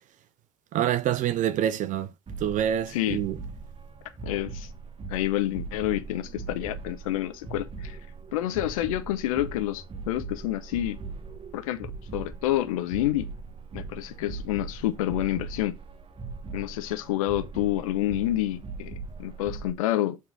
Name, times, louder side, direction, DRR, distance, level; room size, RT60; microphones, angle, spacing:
voice 1, 0.7-2.1 2.4-3.4, right 10 dB, 45° right, 0.5 m, -26 dB
sound 1, 2.3-19.7, right 4 dB, 30° right, 1.2 m, -40 dB
voice 2, 2.9-3.2 4.2-4.7 5.1-8.0 8.3-11.0 11.5-13.3 13.7-15.8 16.5-20.2, left 14 dB, 75° left, 0.7 m, -28 dB
7.3 x 3.7 x 6.0 m
hypercardioid pair, 65°, 18 cm